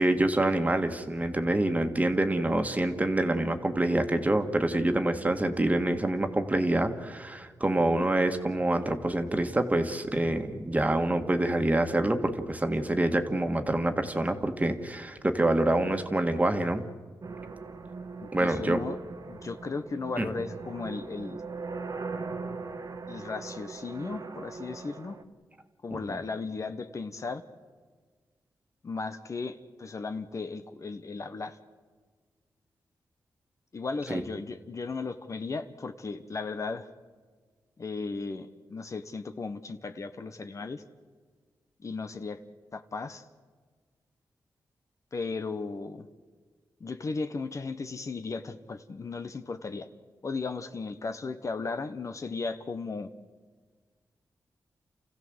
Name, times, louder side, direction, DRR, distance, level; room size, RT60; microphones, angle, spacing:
voice 1, 0.0-16.8 18.3-18.8 20.2-20.3 26.1-26.2 34.1-34.2, right 1 dB, 20° right, 6 dB, 1.8 m, -26 dB
sound 1, 17.2-25.2, right 4 dB, 55° right, 1.4 m, -40 dB
voice 2, 18.2-19.0 19.3-21.4 23.1-25.2 25.8-27.4 28.8-31.6 33.7-36.9 37.8-40.8 41.8-42.4 42.7-43.3 45.1-46.1 46.8-49.9 50.2-53.1, left 4 dB, 45° left, 9 dB, 1.1 m, -36 dB
29.5 x 15.5 x 7.9 m, 1.5 s
cardioid pair, 90°, 7 cm